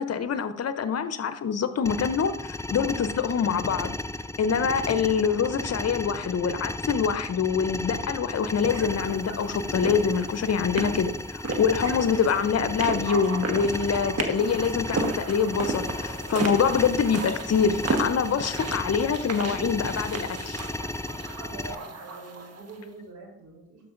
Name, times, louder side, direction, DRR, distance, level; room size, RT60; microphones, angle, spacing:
voice 1, 0.0-3.9 4.4-20.6, left 6 dB, 45° left, 12 dB, 0.7 m, -25 dB
sound 1, 1.9-21.7, left 2 dB, 10° left, 0.5 m, -34 dB
sound 2, 8.7-22.8, right 3 dB, 45° right, 1.3 m, -34 dB
voice 2, 21.1-23.9, right 3 dB, 65° right, -1 dB, 3.4 m, -45 dB
12.5 x 5.3 x 2.5 m, 0.74 s
hypercardioid pair, 40°, 34 cm